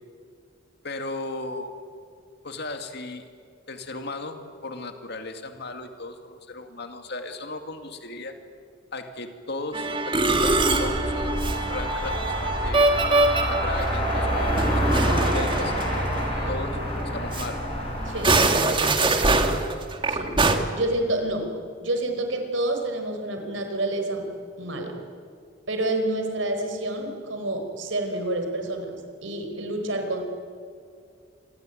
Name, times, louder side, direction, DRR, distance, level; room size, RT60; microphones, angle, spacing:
voice 1, 0.8-1.7 2.4-3.3 3.7-8.4 8.9-12.9 13.5-16.0 16.5-16.8 17.0-17.6 18.4-19.6, left 2 dB, 60° left, 6 dB, 2.3 m, -36 dB
Musical instrument, 9.7-16.6 16.9-17.0 17.3-17.5 18.1-20.6, right 2 dB, 25° right, 1.9 m, -24 dB
sound 1, 10.3-18.5, equal, 30° left, 6.4 m, -27 dB
voice 2, 18.1-18.4 20.1-20.3 20.7-21.5 21.8-24.3 24.6-25.0 25.7-28.9 29.2-30.2, right 1 dB, 80° right, 5 dB, 4.5 m, -28 dB
27.0 x 22.0 x 9.2 m, 2.3 s
head